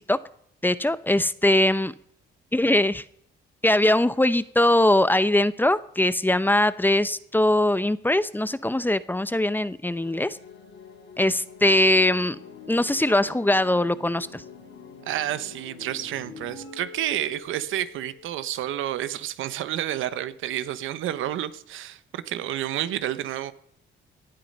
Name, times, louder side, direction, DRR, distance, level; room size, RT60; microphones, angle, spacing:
voice 1, 0.6-1.9 2.5-3.0 3.6-10.4 11.2-12.4 12.7-14.4, left 1 dB, 10° left, 15 dB, 0.8 m, -21 dB
sound 1, 10.0-18.5, left 5 dB, 70° left, 5.1 m, -45 dB
voice 2, 15.0-23.5, right 12 dB, 85° right, 13 dB, 1.1 m, -30 dB
18.0 x 10.5 x 5.5 m, 0.67 s
cardioid pair, 90°, 20 cm